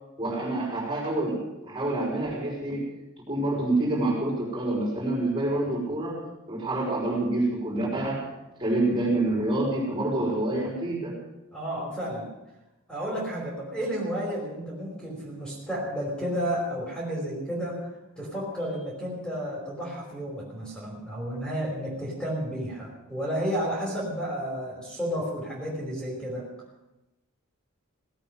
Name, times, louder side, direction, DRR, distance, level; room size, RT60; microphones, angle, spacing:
voice 1, 0.2-2.9 3.3-6.2 6.5-8.2 8.6-11.2, right 2 dB, 25° right, -5 dB, 5.5 m, -27 dB
voice 2, 11.5-12.3 12.9-17.9 18.2-26.5, equal, 5° left, -4 dB, 5.0 m, -32 dB
18.0 x 8.9 x 7.9 m, 0.98 s
head